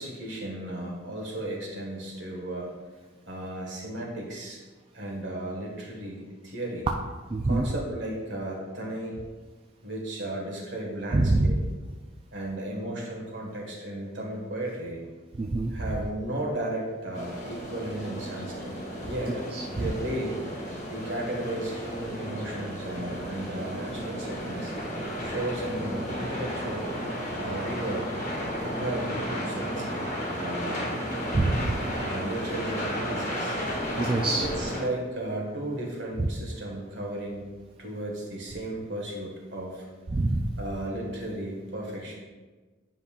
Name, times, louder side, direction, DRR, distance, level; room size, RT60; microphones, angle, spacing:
voice 1, 0.0-2.7 3.3-4.6 4.9-6.9 7.4-9.2 9.8-11.6 12.3-15.0 15.7-18.7 19.0-20.4 20.9-24.7 25.2-26.9 27.4-28.1 28.6-30.0 30.3-30.9 31.9-33.6 34.4-37.5 37.8-39.8 40.6-42.1, right 1 dB, 60° right, -2 dB, 1.6 m, -34 dB
voice 2, 7.3-7.6 11.1-11.5 15.4-15.7 19.8-19.9 31.3-31.8 34.0-34.4 36.2-36.3 40.1-40.4, right 2 dB, 25° right, 0 dB, 0.3 m, -24 dB
sound 1, 17.1-34.8, equal, 35° left, 1.2 m, -33 dB
9.4 x 5.4 x 2.4 m, 1.3 s
head